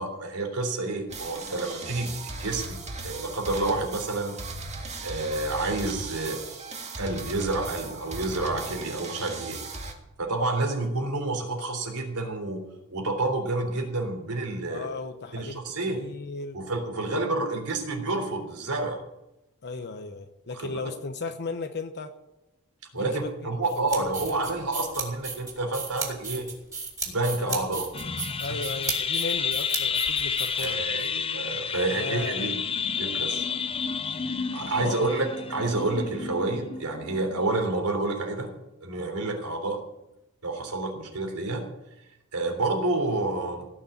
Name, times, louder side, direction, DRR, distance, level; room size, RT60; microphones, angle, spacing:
voice 1, 0.0-2.8 3.0-4.4 5.0-6.4 7.0-9.8 10.2-12.6 12.9-14.9 15.3-16.0 16.5-19.0 20.5-20.7 22.9-26.5 27.0-27.9 28.5-28.6 30.6-32.6 33.0-33.4 34.5-38.5 38.8-39.8 40.4-41.7 42.3-43.7, right 2 dB, 85° right, 3 dB, 3.6 m, -29 dB
sound 1, 1.1-9.9, right 3 dB, 30° right, 2.1 m, -37 dB
voice 2, 14.7-15.6 15.9-16.6 17.1-17.7 19.6-22.1 22.9-24.4 27.4-27.9 28.4-31.1 31.6-32.6 34.6-35.1, left 3 dB, 50° left, 7 dB, 0.9 m, -36 dB
sound 2, 23.6-31.1, right 4 dB, 15° right, 3.8 m, -35 dB
sound 3, 27.9-37.6, left 6 dB, 25° left, 0.6 m, -30 dB
17.5 x 6.5 x 9.1 m, 0.93 s
head